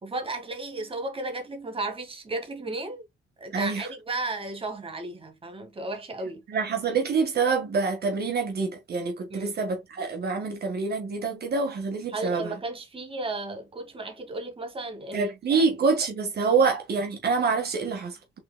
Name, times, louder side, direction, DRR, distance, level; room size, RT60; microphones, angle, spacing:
voice 1, 0.0-3.1 3.4-6.4 9.3-9.6 12.1-15.6 16.4-16.6, right 2 dB, 25° right, 1.7 m, -34 dB
voice 2, 3.5-3.8 6.5-12.5 15.1-18.4, right 4 dB, 55° right, 1.6 m, -26 dB
5.9 x 3.8 x 2.2 m
cardioid pair, 90°, 20 cm